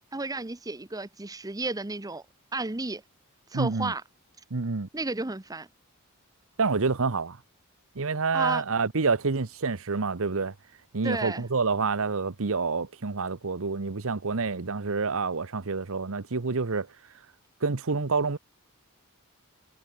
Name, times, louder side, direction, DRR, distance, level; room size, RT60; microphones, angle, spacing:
voice 1, 0.1-2.2 2.5-3.0 3.5-4.0 4.9-5.7 8.3-8.6 11.0-11.4, right 3 dB, 15° right, 0.8 m, -32 dB
voice 2, 3.5-3.9 4.5-4.9 6.6-7.4 8.0-10.5 10.9-16.9 17.6-18.4, right 4 dB, 65° right, 1.0 m, -28 dB
head